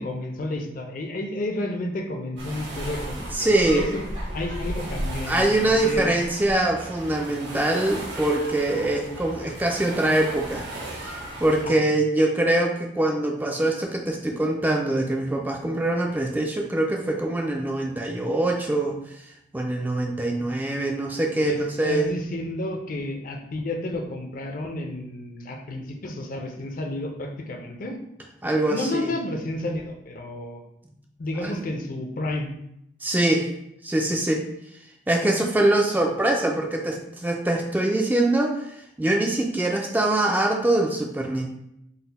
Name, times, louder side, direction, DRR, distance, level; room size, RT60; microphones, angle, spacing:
voice 1, 0.0-4.0 4.3-6.1 11.6-11.8 21.3-21.6 21.8-28.0 28.7-30.6 31.2-32.5, left 1 dB, 50° left, 3 dB, 0.5 m, -31 dB
sound 1, 2.4-11.6, right 1 dB, 80° right, 1.1 m, -35 dB
voice 2, 3.3-3.9 5.3-10.7 11.0-11.1 11.4-19.0 19.5-22.1 28.4-29.1 31.4-31.6 33.0-33.5 33.8-34.5 35.1-38.6 39.0-41.5, right 1 dB, 10° right, 1 dB, 0.3 m, -23 dB
4.0 x 2.1 x 4.0 m, 0.79 s
head